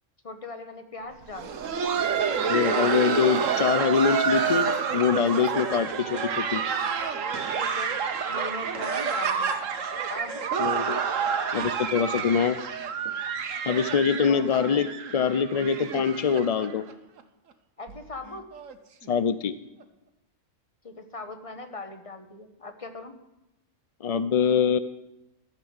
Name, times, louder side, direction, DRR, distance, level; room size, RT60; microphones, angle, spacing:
voice 1, 0.2-1.8 7.6-7.9 8.3-9.6 10.1-10.4 14.2-14.8 17.8-18.5 20.8-23.1, left 3 dB, 30° left, 7 dB, 1.3 m, -39 dB
Laughter, 1.2-16.9 17.2-17.3 17.9-18.0 18.5-18.7 19.8-19.9, right 6 dB, 85° right, 1.3 m, -28 dB
voice 2, 2.5-6.6 10.6-11.0 11.5-12.6 13.7-16.9 19.1-19.5 24.0-24.8, left 7 dB, 60° left, 13 dB, 0.3 m, -24 dB
13.5 x 6.8 x 9.4 m, 0.93 s
omnidirectional pair, 1.3 m